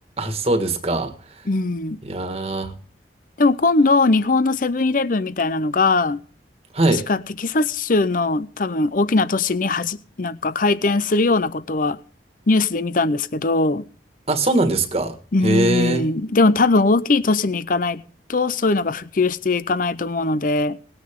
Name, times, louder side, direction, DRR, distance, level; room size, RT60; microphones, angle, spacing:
voice 1, 0.2-1.5 2.0-2.7 6.7-7.0 14.3-15.2 15.4-16.0, right 2 dB, 35° right, 1.8 m, -21 dB
voice 2, 1.5-2.0 3.4-6.2 7.1-12.0 12.5-13.9 15.3-18.0 18.3-20.8, left 3 dB, 50° left, 0.7 m, -20 dB
19.5 x 9.8 x 3.7 m
head